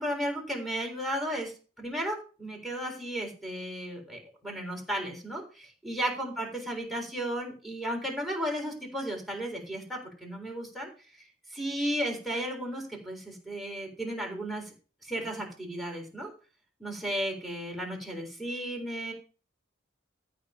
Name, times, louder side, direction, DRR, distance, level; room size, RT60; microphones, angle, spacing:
voice 1, 0.0-11.2 11.5-14.6 15.0-16.3 16.8-19.1, equal, ahead, 2 dB, 3.8 m, -34 dB
13.5 x 5.0 x 5.8 m, 0.37 s
head